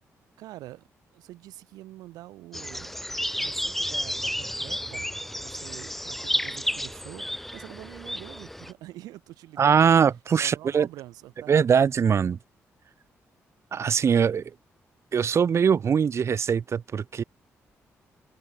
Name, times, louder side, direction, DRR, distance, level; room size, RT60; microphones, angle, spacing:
voice 1, 0.4-0.9 1.1-2.9 3.4-10.0 10.4-11.5, right 16 dB, 85° right, 2.7 m, -45 dB
sound 1, 2.5-8.7, equal, 5° left, 1.2 m, -32 dB
voice 2, 9.6-10.9 11.5-12.4 13.7-14.5 15.1-17.2, right 7 dB, 45° right, 0.4 m, -22 dB
supercardioid pair, 50°, 6 cm